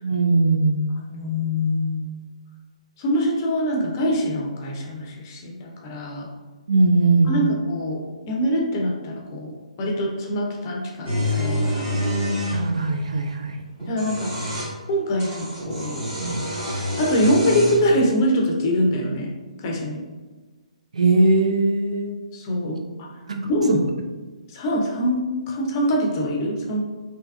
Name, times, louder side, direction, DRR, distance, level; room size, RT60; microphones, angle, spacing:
voice 1, 0.0-0.9 6.7-7.4 12.5-13.9 16.2-16.4 20.9-22.2 23.3-23.8, right 3 dB, 60° right, 4 dB, 0.4 m, -20 dB
voice 2, 1.1-2.2 3.0-6.3 7.3-11.9 13.9-14.3 14.9-16.0 17.0-19.3 19.6-20.0 22.3-23.1 23.5-23.9 24.5-26.8, equal, 30° left, -1 dB, 0.6 m, -24 dB
sound 1, 11.0-12.6 13.8-14.7 15.2-17.9, left 1 dB, 20° right, 1.1 m, -27 dB
3.3 x 2.7 x 2.3 m, 1.3 s
figure-of-eight pair, 135°, 4 cm